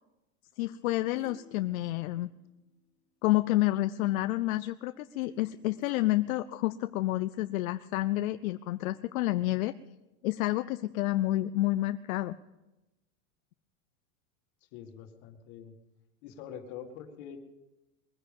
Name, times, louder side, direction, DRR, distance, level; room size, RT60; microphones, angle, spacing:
voice 1, 0.6-2.3 3.2-9.7 10.2-12.4, left 16 dB, 80° left, 12 dB, 0.6 m, -29 dB
sound 1, 0.9-3.2 5.2-7.2 7.8-7.9, left 5 dB, 30° left, 1.8 m, -58 dB
voice 2, 14.7-15.8 16.2-17.4, left 8 dB, 55° left, 6 dB, 2.1 m, -45 dB
21.5 x 10.5 x 5.3 m, 1.0 s
supercardioid pair, 135°, 41 cm